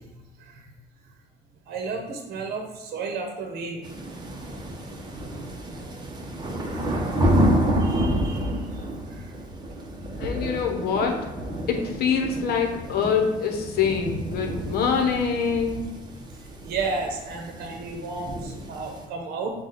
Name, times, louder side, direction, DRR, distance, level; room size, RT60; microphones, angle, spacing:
voice 1, 1.7-3.8 7.8-8.6 16.6-19.5, right 4 dB, 70° right, 2 dB, 0.8 m, -32 dB
sound 1, 3.8-19.0, equal, 25° right, 0.8 m, -29 dB
voice 2, 10.2-11.3 11.7-15.9, left 6 dB, 65° left, 3 dB, 0.8 m, -25 dB
5.8 x 2.3 x 3.9 m, 1.0 s
cardioid pair, 110°, 17 cm